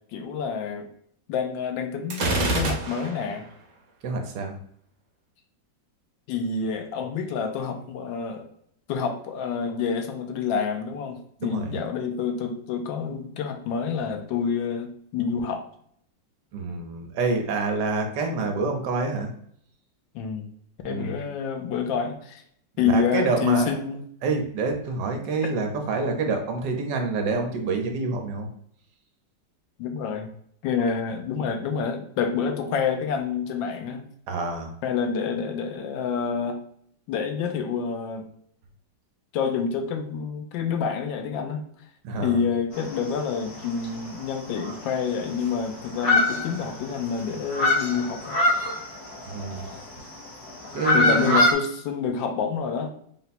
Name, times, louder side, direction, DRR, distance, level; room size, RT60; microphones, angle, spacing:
voice 1, 0.1-0.9 1.3-3.5 6.3-8.5 8.9-15.6 20.1-20.5 20.8-22.4 22.8-24.0 29.8-30.3 30.6-34.0 34.8-36.6 37.1-38.3 39.3-41.6 42.2-48.4 50.9-52.9, left 6 dB, 80° left, 5 dB, 1.3 m, -28 dB
Gunshot gunfire, 2.1-3.3, right 2 dB, 50° right, 1.2 m, -26 dB
voice 2, 4.0-4.6 11.4-11.7 16.5-19.3 20.9-21.2 22.8-23.8 24.2-28.5 34.3-34.7 42.0-42.5 49.3-49.7 50.7-51.4, right 3 dB, 70° right, 3 dB, 1.3 m, -27 dB
sound 1, 42.7-43.4 43.8-43.9 44.2-44.3 44.6-45.6 45.9-47.0 47.3-49.8 50.5-51.5, left 2 dB, 60° left, 1.3 m, -23 dB
4.0 x 2.2 x 4.1 m, 0.66 s
omnidirectional pair, 2.1 m